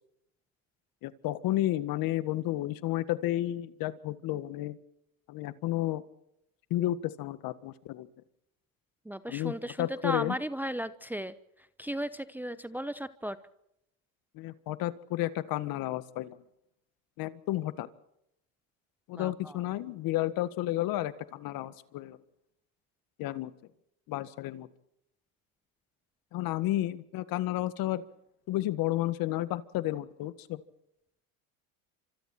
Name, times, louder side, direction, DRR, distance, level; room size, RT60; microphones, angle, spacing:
voice 1, 1.0-4.8 5.3-6.0 6.7-8.1 9.3-9.5 9.8-10.3 14.4-16.4 17.2-17.9 19.1-22.2 23.2-23.5 24.1-24.7 26.3-28.0 28.5-30.6, left 15 dB, 55° left, 14 dB, 1.7 m, -32 dB
voice 2, 9.0-13.4 19.1-19.6, equal, 5° right, 13 dB, 0.9 m, -36 dB
29.0 x 26.5 x 4.4 m, 0.80 s
supercardioid pair, 110°, 42 cm